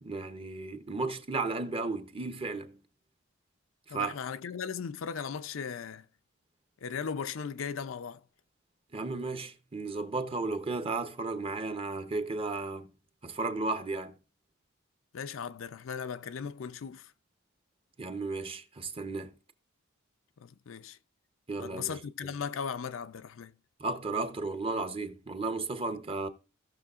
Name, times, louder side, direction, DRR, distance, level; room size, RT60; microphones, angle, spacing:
voice 1, 0.0-2.8 3.9-4.1 8.9-12.9 13.2-14.2 18.0-19.3 21.5-22.0 23.8-26.3, right 3 dB, 30° right, 0.7 m, -34 dB
voice 2, 3.9-6.0 6.8-8.2 15.1-17.1 20.4-21.0 21.6-23.5, left 6 dB, 75° left, 0.5 m, -37 dB
17.0 x 6.2 x 2.4 m
head